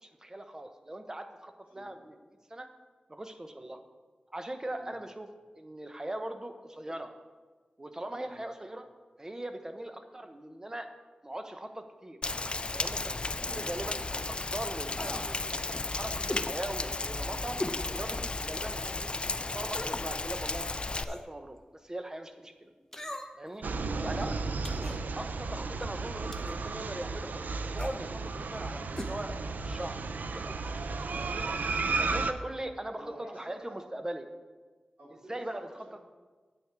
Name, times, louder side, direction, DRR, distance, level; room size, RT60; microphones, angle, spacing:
voice 1, 0.0-2.2 2.5-2.7 3.1-3.8 4.3-5.3 5.5-7.1 7.8-8.9 9.2-10.9 11.2-12.2 12.7-13.2 13.5-15.4 15.8-17.6 17.9-19.1 19.5-21.6 21.8-22.7 23.4-23.6 24.0-24.4 25.2-27.3 27.7-30.6 31.1-31.5 32.1-34.3 35.3-35.7, right 1 dB, 20° right, 7 dB, 0.9 m, -40 dB
voice 2, 1.6-2.0 4.7-5.0 8.1-8.4 13.4-13.6 22.7-22.8 23.6-24.9 31.8-32.1 32.9-33.8 35.0-36.0, equal, 70° right, -6 dB, 3.8 m, -51 dB
Rain, 12.2-21.0, left 3 dB, 35° left, 0.4 m, -34 dB
sound 1, 15.0-15.3 16.3-16.5 17.6-17.8 18.3-18.4 19.6-20.0 20.9-21.3 22.9-23.5 24.6-25.0 26.3-26.6 27.7-28.0 28.9-29.1 29.4-29.5, left 1 dB, 15° left, 0.9 m, -38 dB
sound 2, 23.6-32.3, right 3 dB, 90° right, 0.5 m, -34 dB
9.8 x 8.2 x 4.7 m, 1.3 s
wide cardioid pair, 85°, 3 cm